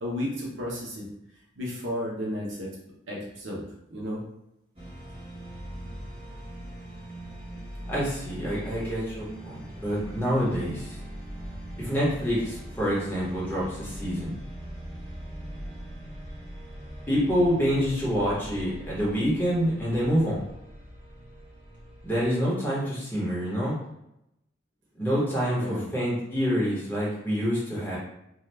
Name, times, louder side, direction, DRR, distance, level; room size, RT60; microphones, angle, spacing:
voice 1, 0.0-1.1 1.6-2.7 3.1-3.6 3.9-4.2 25.6-25.9, left 1 dB, 80° right, -4 dB, 0.9 m, -33 dB
sound 1, 4.7-22.2, equal, 25° right, 1.1 m, -41 dB
voice 2, 7.9-11.0 11.8-14.3 17.1-20.4 22.0-23.7 25.0-28.0, equal, 10° left, -8 dB, 1.0 m, -27 dB
2.7 x 2.4 x 3.3 m, 0.82 s
head